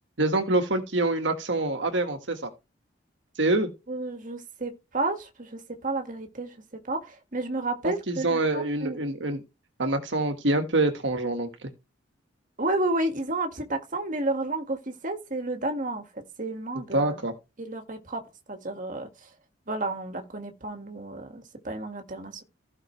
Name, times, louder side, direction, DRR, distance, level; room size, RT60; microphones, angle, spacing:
voice 1, 0.2-2.5 3.4-3.7 7.8-9.4 9.8-11.7 16.9-17.3, right 2 dB, 70° right, 1.6 m, -26 dB
voice 2, 3.9-6.6 6.9-9.1 12.6-17.2 17.6-18.2 18.5-19.3 19.7-22.4, right 2 dB, 45° right, 1.8 m, -31 dB
15.5 x 5.8 x 3.2 m
head